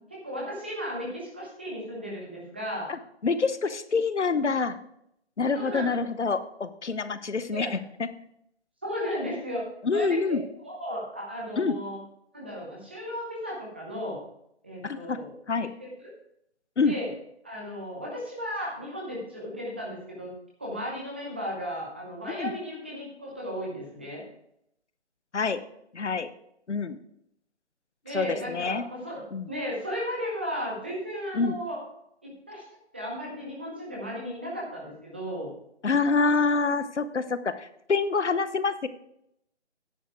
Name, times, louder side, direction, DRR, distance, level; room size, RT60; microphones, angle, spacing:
voice 1, 0.1-2.9 5.6-6.0 7.5-7.7 8.8-9.6 9.9-10.4 10.6-12.0 12.3-14.2 14.6-15.3 15.6-16.1 16.9-17.1 17.4-20.3 20.6-24.2 28.0-31.8 32.2-32.6 32.9-35.5, equal, 10° right, -4 dB, 0.7 m, -35 dB
voice 2, 2.9-4.8 5.4-7.7 8.0-8.1 9.8-10.4 11.6-11.8 14.8-15.2 15.5-15.7 16.8-17.0 22.3-22.5 25.3-25.6 25.9-26.3 26.7-27.0 28.1-28.8 29.3-29.5 31.3-31.6 35.8-38.9, left 4 dB, 80° left, 13 dB, 0.9 m, -26 dB
9.9 x 7.1 x 4.6 m, 0.76 s
figure-of-eight pair, 160°, 34 cm